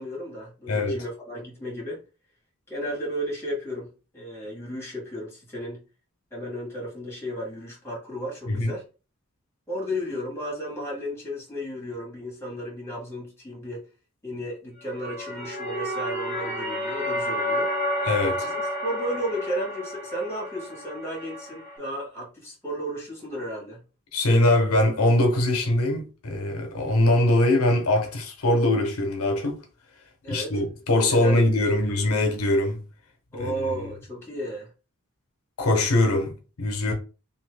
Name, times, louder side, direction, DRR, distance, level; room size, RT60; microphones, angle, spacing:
voice 1, 0.0-2.0 2.7-5.8 6.3-8.8 9.7-13.8 14.2-17.7 18.4-23.8 30.2-30.6 31.1-31.8 33.3-34.7, equal, 10° left, 1.4 m, -34 dB
sound 1, 14.8-21.8, equal, 35° left, 0.9 m, -30 dB
voice 2, 18.0-18.5 24.1-29.6 30.3-32.8 33.4-33.5 35.6-36.9, left 1 dB, 85° left, 0.8 m, -22 dB
2.7 x 2.6 x 3.3 m
head